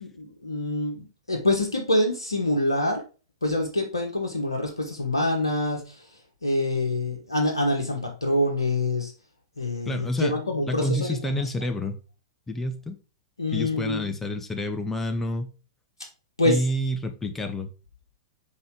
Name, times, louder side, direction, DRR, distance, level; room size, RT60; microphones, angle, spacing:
voice 1, 0.0-3.0 3.4-9.1 9.6-11.2 11.6-11.7 13.4-14.1 16.4-16.6, left 1 dB, 90° left, 1.2 m, -26 dB
voice 2, 9.9-10.3 10.7-12.0 12.5-13.0 13.5-15.5 16.4-17.7, left 1 dB, 10° left, 1.0 m, -28 dB
5.5 x 4.1 x 4.7 m
figure-of-eight pair, 105°, 2 cm